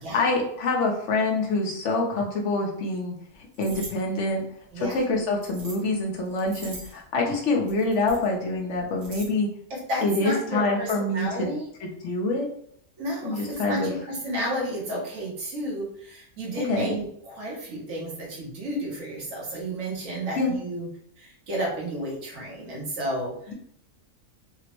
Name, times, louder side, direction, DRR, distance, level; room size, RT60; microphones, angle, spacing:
voice 1, 0.1-3.1 3.6-4.4 4.8-9.5 10.0-11.5 11.8-12.5 13.2-13.9 16.6-17.0 20.4-20.5 23.5-23.6, left 2 dB, 70° left, 0 dB, 1.0 m, -26 dB
sound 1, 3.5-3.9 4.9-5.8 6.3-7.0 7.7-8.3 8.7-9.3, right 2 dB, 60° right, 1.1 m, -41 dB
voice 2, 9.7-11.7 13.0-20.9 21.2-23.3, equal, 80° right, -3 dB, 1.4 m, -32 dB
3.6 x 2.0 x 2.9 m, 0.66 s
omnidirectional pair, 1.4 m